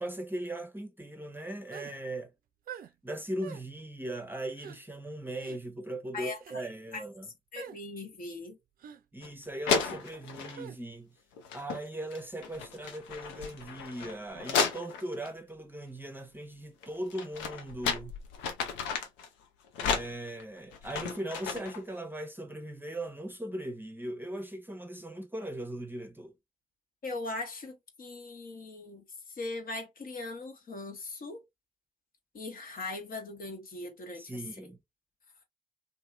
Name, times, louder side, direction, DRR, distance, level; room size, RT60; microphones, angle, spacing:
voice 1, 0.0-2.3 3.0-7.3 9.1-11.2 11.5-18.1 19.8-26.3 34.1-34.8, right 1 dB, 10° right, 0.8 m, -39 dB
sound 1, 1.7-2.0 2.7-2.9 3.4-3.7 4.6-4.8 5.4-5.6 6.3-6.6 7.6-7.8 8.8-9.0 10.6-10.8, right 8 dB, 50° right, 0.4 m, -45 dB
voice 2, 6.1-6.7 6.9-7.0 7.5-8.6 27.0-31.4 32.3-34.4, left 2 dB, 50° left, 1.1 m, -40 dB
sound 2, 9.2-9.3 9.7-10.6 11.4-11.8 12.1-15.3 16.8-19.3 19.7-21.8, left 6 dB, 75° left, 0.6 m, -33 dB
2.7 x 2.7 x 2.4 m
hypercardioid pair, 40°, 19 cm